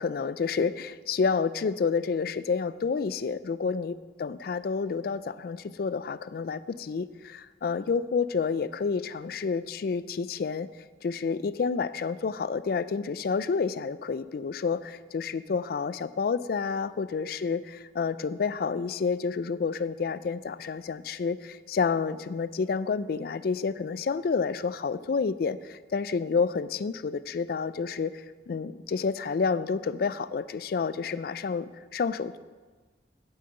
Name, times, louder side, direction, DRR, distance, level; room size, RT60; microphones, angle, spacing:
voice 1, 0.0-10.7 11.0-17.6 18.0-32.4, left 5 dB, 55° left, 16 dB, 0.3 m, -29 dB
8.5 x 5.5 x 7.8 m, 1.4 s
head